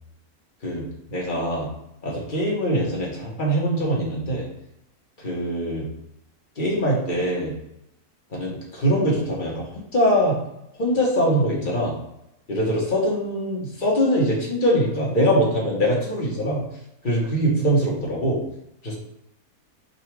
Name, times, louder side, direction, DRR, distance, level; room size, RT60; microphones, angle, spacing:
voice 1, 0.6-1.7 2.0-4.5 5.2-5.8 6.6-7.5 8.3-10.4 10.7-11.9 12.5-16.6 17.0-18.4 18.8-19.0, equal, 35° left, -3 dB, 1.0 m, -23 dB
3.9 x 2.4 x 4.5 m, 0.82 s
omnidirectional pair, 1.6 m